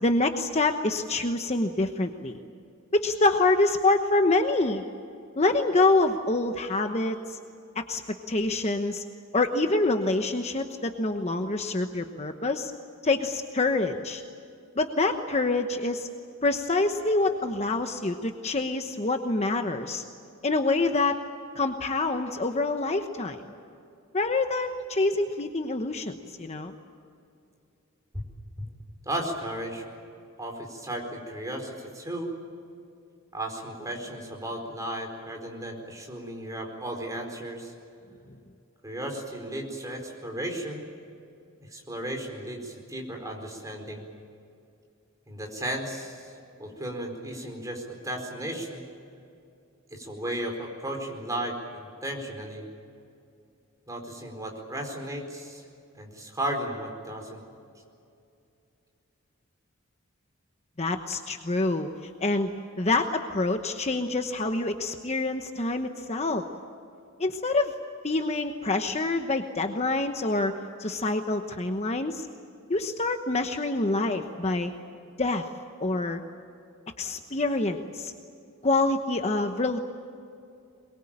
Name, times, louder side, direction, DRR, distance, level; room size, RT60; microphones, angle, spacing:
voice 1, 0.0-2.4 2.9-4.8 5.4-7.4 7.9-8.0 8.3-9.0 9.3-12.7 13.0-14.2 14.8-16.1 16.4-20.0 20.4-21.2 21.5-23.4 24.1-26.1 26.4-26.7 60.8-61.9 62.2-62.5 62.8-66.5 67.2-67.7 68.0-72.3 72.7-74.7 75.2-75.5 75.8-76.2 77.0-78.1 78.6-79.8, left 2 dB, 30° left, 6 dB, 1.1 m, -26 dB
voice 2, 29.0-29.9 30.4-32.3 33.3-37.7 38.8-40.9 41.6-44.0 45.3-46.3 46.6-48.9 49.9-52.6 53.9-55.6 55.9-57.4, right 1 dB, 15° right, 1 dB, 4.6 m, -35 dB
23.0 x 22.5 x 8.8 m, 2.6 s
head